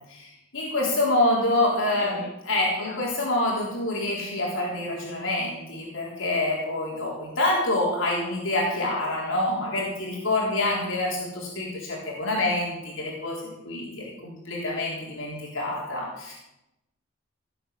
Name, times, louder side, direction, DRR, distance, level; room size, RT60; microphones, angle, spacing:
voice 1, 0.1-2.2 2.5-13.4 13.6-16.3, left 2 dB, 75° left, -3 dB, 4.0 m, -26 dB
voice 2, 1.2-1.5 1.9-2.4 2.8-3.3, left 2 dB, 50° left, -1 dB, 4.7 m, -42 dB
17.5 x 8.0 x 7.0 m, 0.88 s
head